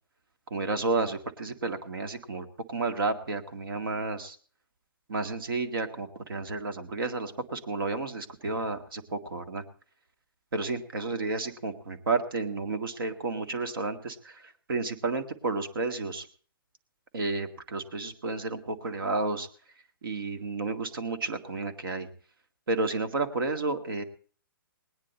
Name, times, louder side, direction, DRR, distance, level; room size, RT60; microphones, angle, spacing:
voice 1, 0.5-4.4 5.1-9.6 10.5-16.3 17.1-19.5 20.0-22.1 22.7-24.0, right 3 dB, 75° right, 7 dB, 2.0 m, -31 dB
19.5 x 9.9 x 4.3 m, 0.43 s
hypercardioid pair, 140°, 12 cm